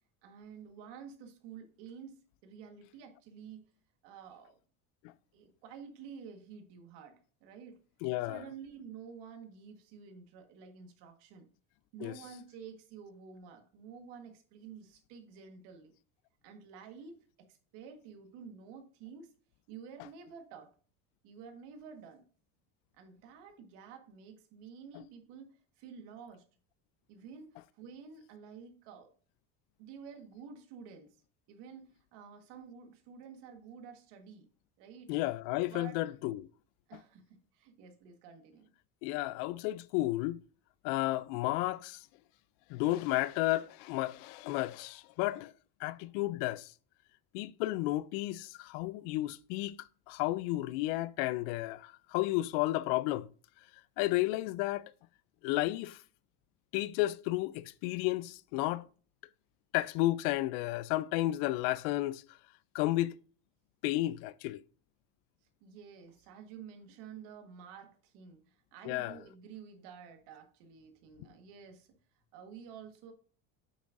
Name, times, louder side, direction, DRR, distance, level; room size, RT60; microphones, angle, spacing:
voice 1, 0.2-3.7 4.0-4.6 5.3-7.8 8.2-11.5 11.9-15.9 16.4-19.3 19.7-20.7 21.2-22.2 22.9-26.4 27.1-29.1 29.8-31.2 31.5-34.5 34.8-35.1 35.7-36.0 36.9-38.7 65.6-71.9 72.3-73.1, right 6 dB, 70° right, 1.7 m, -50 dB
voice 2, 8.0-8.4 12.0-12.1 35.1-36.5 39.0-40.4 40.8-42.0 42.7-45.5 45.8-46.7 47.3-49.8 50.1-53.3 54.0-54.9 55.4-56.0 56.7-58.8 59.7-62.2 62.7-63.1 63.8-64.6 68.8-69.2, left 17 dB, 70° left, 0.6 m, -32 dB
8.1 x 6.0 x 2.5 m
supercardioid pair, 95°, 43 cm